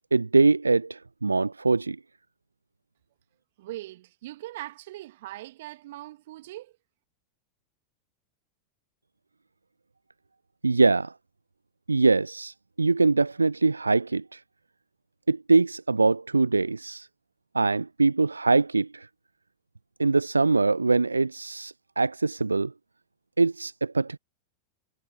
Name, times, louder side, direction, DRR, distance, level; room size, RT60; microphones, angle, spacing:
voice 1, 0.1-2.0 10.6-11.1 11.9-14.4 15.3-17.1 17.5-19.1 20.0-22.7 23.4-24.2, right 3 dB, 80° right, 0.4 m, -23 dB
voice 2, 3.6-6.7, right 16 dB, 55° right, 2.3 m, -40 dB
figure-of-eight pair, 90°, 0 cm